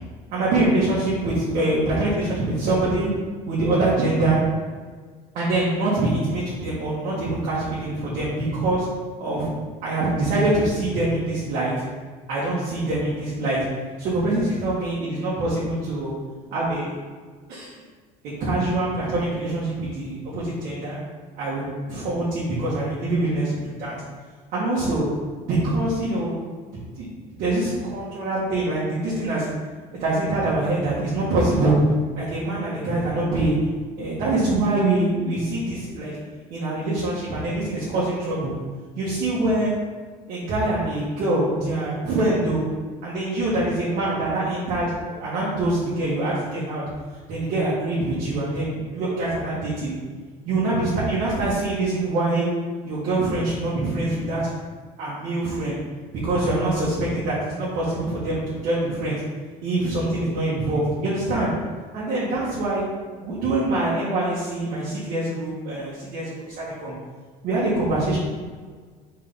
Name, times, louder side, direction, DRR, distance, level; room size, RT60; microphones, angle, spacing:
voice 1, 0.3-3.1 3.5-4.4 5.3-8.9 9.2-9.5 9.8-11.7 12.3-13.6 14.0-16.1 16.5-16.9 17.5-17.7 18.4-21.0 21.4-23.9 24.5-25.1 25.5-27.0 27.4-29.5 30.0-31.7 32.1-33.6 34.0-36.1 36.5-38.5 39.0-39.7 40.3-42.6 43.0-46.8 47.3-49.9 50.4-52.4 52.8-54.5 55.0-55.8 56.2-59.2 59.6-61.5 61.9-62.8 63.2-66.9 67.4-68.2, right 2 dB, 60° right, -8 dB, 1.7 m, -24 dB
4.6 x 3.8 x 5.6 m, 1.5 s
cardioid pair, 130°, 16 cm